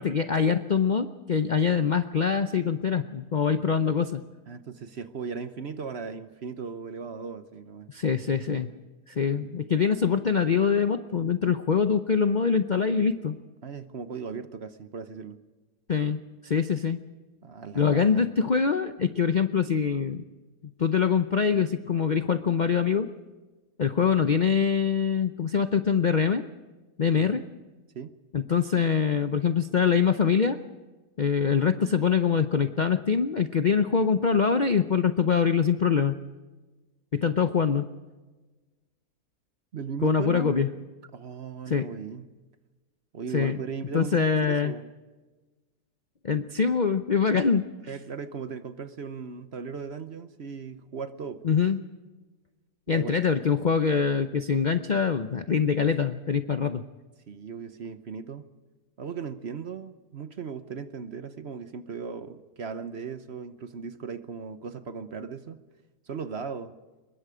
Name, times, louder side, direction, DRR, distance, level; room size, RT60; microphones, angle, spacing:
voice 1, 0.0-4.2 7.9-8.7 9.2-13.4 15.9-17.0 17.8-20.2 20.8-23.1 23.8-26.4 27.0-27.4 28.3-30.6 31.2-36.2 37.1-37.9 40.0-40.7 41.7-41.9 43.3-43.6 43.9-44.7 46.2-47.7 51.4-51.8 52.9-56.8, left 6 dB, 50° left, 9 dB, 0.5 m, -24 dB
voice 2, 4.5-7.9 9.3-9.5 13.6-15.4 17.4-18.2 27.1-27.4 27.9-28.1 39.7-40.6 41.1-42.3 43.1-44.9 47.9-51.6 52.9-53.2 57.3-58.5 59.0-65.6 66.1-66.7, right 5 dB, 50° right, 11 dB, 1.0 m, -37 dB
24.5 x 21.5 x 5.0 m, 1.2 s
omnidirectional pair, 1.7 m